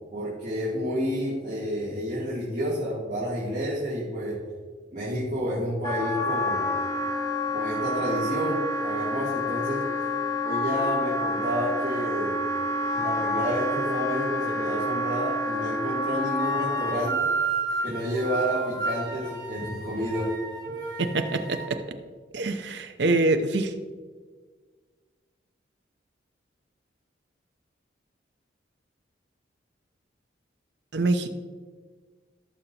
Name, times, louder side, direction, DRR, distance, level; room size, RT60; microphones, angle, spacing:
voice 1, 0.1-4.4 4.9-6.7 7.5-9.9 10.4-12.4 12.9-17.3 17.8-20.3, equal, 40° right, -9 dB, 2.8 m, -30 dB
Wind instrument woodwind instrument, 5.8-17.1, left 1 dB, 15° left, 0.7 m, -28 dB
sound 1, 16.4-21.7, right 4 dB, 20° right, 1.9 m, -32 dB
voice 2, 21.0-21.8 22.3-23.7 30.9-31.3, right 2 dB, 65° right, 6 dB, 0.7 m, -25 dB
17.0 x 6.7 x 2.9 m, 1.5 s
head